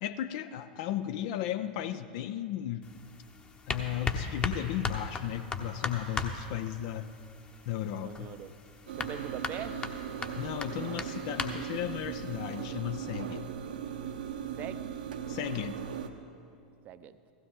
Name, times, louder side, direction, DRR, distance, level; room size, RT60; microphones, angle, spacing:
voice 1, 0.0-2.8 3.7-7.1 7.7-8.3 10.4-13.5 15.3-15.8, left 11 dB, 50° left, 11 dB, 0.5 m, -35 dB
sound 1, 2.8-12.6, left 4 dB, 20° left, 1.0 m, -38 dB
voice 2, 8.0-8.5 8.9-9.9 14.6-14.9 16.8-17.2, right 10 dB, 35° right, 12 dB, 0.6 m, -42 dB
sound 2, 8.9-16.1, right 8 dB, 70° right, 0.9 m, -38 dB
16.0 x 15.5 x 3.7 m, 2.4 s
figure-of-eight pair, 90°, 5 cm